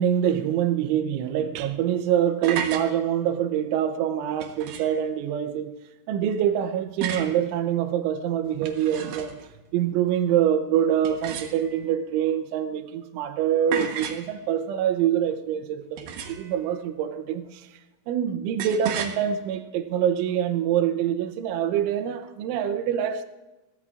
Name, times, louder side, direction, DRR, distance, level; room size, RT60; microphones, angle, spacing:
voice 1, 0.0-5.7 6.1-9.4 9.7-17.6 18.1-23.3, right 9 dB, 90° right, 3.3 m, -25 dB
sound 1, 2.4-2.9 4.4-5.0 7.0-7.4 8.5-9.5 11.0-11.9 13.7-14.3 16.0-16.6 18.6-19.2, right 7 dB, 70° right, 2.6 m, -32 dB
22.5 x 16.0 x 2.5 m
omnidirectional pair, 5.3 m